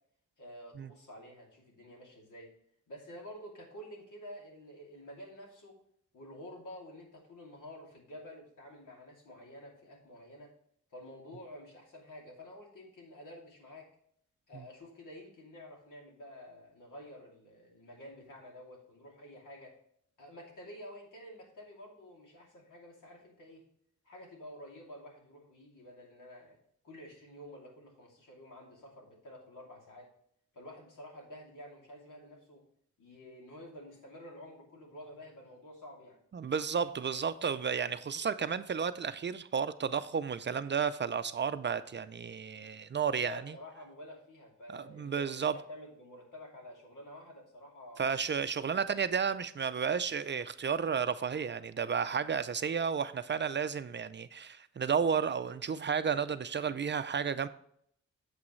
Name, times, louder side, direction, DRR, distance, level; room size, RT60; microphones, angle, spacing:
voice 1, 0.4-2.5 2.9-5.8 6.1-10.5 10.9-13.9 14.5-19.8 20.2-23.6 24.0-26.6 26.8-30.1 30.5-32.6 33.0-36.2 43.1-48.0 48.7-48.9, left 1 dB, 85° left, -1 dB, 2.9 m, -50 dB
voice 2, 36.3-43.5 44.7-45.6 48.0-57.5, right 6 dB, 35° right, 12 dB, 0.4 m, -32 dB
8.5 x 8.1 x 3.1 m, 0.67 s
wide cardioid pair, 125°, 30 cm